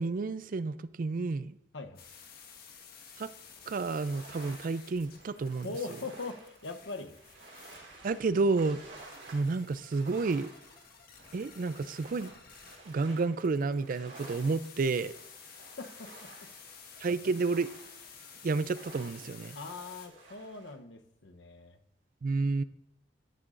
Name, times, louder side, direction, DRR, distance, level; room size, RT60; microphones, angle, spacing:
voice 1, 0.0-1.6 3.2-3.3 3.7-5.8 8.0-8.8 9.3-10.5 11.3-12.3 12.9-15.1 17.0-17.7 18.4-19.6 22.2-22.6, right 3 dB, 50° right, 15 dB, 0.4 m, -30 dB
sound 1, 1.9-20.1, left 6 dB, 55° left, 1.5 m, -53 dB
sound 2, 3.4-20.7, right 2 dB, 75° right, 3.4 m, -53 dB
voice 2, 5.6-7.2 15.8-16.3 19.5-21.8, left 3 dB, 90° left, 7 dB, 0.9 m, -41 dB
13.5 x 10.5 x 2.5 m, 0.79 s
head